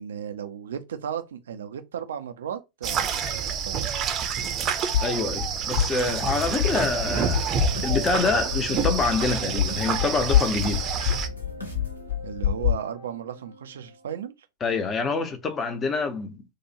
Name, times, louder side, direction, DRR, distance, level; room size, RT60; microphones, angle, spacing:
voice 1, 0.0-3.9 12.2-14.3, right 8 dB, 65° right, 0.7 m, -35 dB
sound 1, 2.8-11.3, right 7 dB, 30° right, 0.9 m, -28 dB
sound 2, 4.9-12.7, left 11 dB, 55° left, 1.5 m, -27 dB
voice 2, 5.0-10.9 14.6-16.4, left 4 dB, 20° left, 0.9 m, -26 dB
sound 3, 6.3-14.3, right 1 dB, 80° left, 1.8 m, -38 dB
6.4 x 2.5 x 2.9 m
figure-of-eight pair, 90°, 0 cm